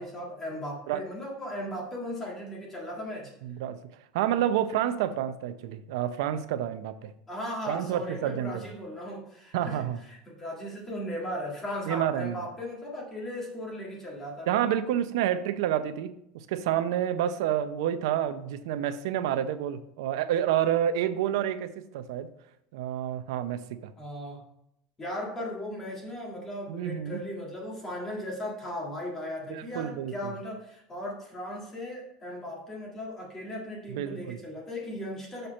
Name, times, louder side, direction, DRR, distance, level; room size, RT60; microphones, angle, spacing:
voice 1, 0.0-3.3 7.3-14.5 24.0-24.4 25.0-35.5, left 1 dB, 15° left, -2 dB, 1.7 m, -37 dB
voice 2, 3.4-3.8 4.1-7.1 7.7-8.7 9.5-10.0 11.9-12.3 14.5-22.3 22.7-23.9 26.7-27.2 29.5-30.3 33.9-34.4, right 10 dB, 80° right, 11 dB, 0.6 m, -29 dB
6.6 x 4.3 x 5.2 m, 0.77 s
cardioid pair, 165°, 2 cm